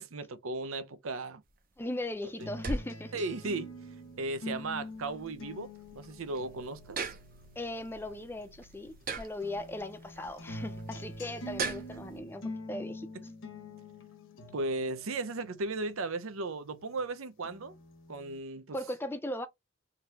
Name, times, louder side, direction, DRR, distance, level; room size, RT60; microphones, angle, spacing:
voice 1, 0.0-1.4 3.1-3.7 4.2-7.1 14.5-17.8 18.1-18.8, right 2 dB, 85° right, 0.7 m, -36 dB
sound 1, 1.4-12.2, right 4 dB, 45° right, 0.7 m, -42 dB
voice 2, 1.8-3.1 7.6-12.4 12.7-13.1 18.7-19.5, left 1 dB, 10° left, 0.4 m, -38 dB
sound 2, 2.4-9.0 9.4-17.0 17.4-18.4, left 1 dB, 65° left, 0.9 m, -46 dB
3.9 x 2.8 x 3.4 m
head